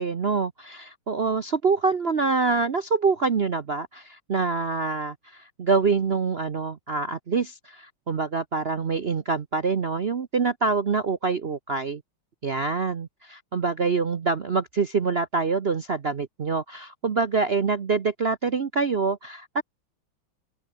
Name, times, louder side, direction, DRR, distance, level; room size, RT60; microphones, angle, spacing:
voice 1, 0.0-12.0 12.4-19.6, right 4 dB, 50° right, 0.7 m, -25 dB
open air
omnidirectional pair, 2.3 m